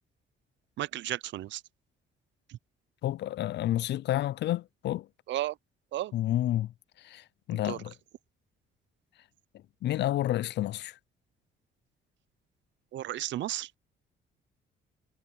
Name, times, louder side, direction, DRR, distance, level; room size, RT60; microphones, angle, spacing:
voice 1, 0.8-1.6 2.5-2.6 5.3-5.6 5.9-6.1 7.5-7.8 12.9-13.7, right 14 dB, 65° right, 0.5 m, -34 dB
voice 2, 3.0-5.1 6.1-6.7 7.0-7.9 9.8-11.0, left 13 dB, 60° left, 0.4 m, -30 dB
cardioid pair, 120°, 20 cm